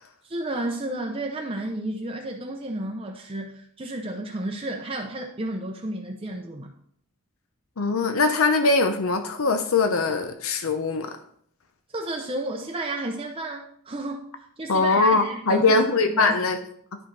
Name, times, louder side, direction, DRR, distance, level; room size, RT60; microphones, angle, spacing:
voice 1, 0.2-6.7 11.9-14.2 14.6-16.4, right 1 dB, 25° right, 2 dB, 0.7 m, -32 dB
voice 2, 7.8-11.1 14.7-16.6, left 3 dB, 65° left, 6 dB, 0.8 m, -21 dB
11.5 x 5.3 x 3.3 m, 0.63 s
head